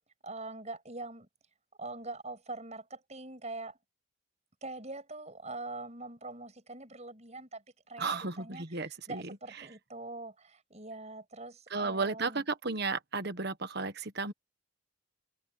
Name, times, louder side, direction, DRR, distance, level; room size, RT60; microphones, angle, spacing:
voice 1, 0.2-1.3 1.8-3.8 4.6-12.4, right 2 dB, 30° right, 7.1 m, -43 dB
voice 2, 8.0-9.2 9.6-9.7 11.7-14.3, right 4 dB, 50° right, 1.4 m, -34 dB
open air
head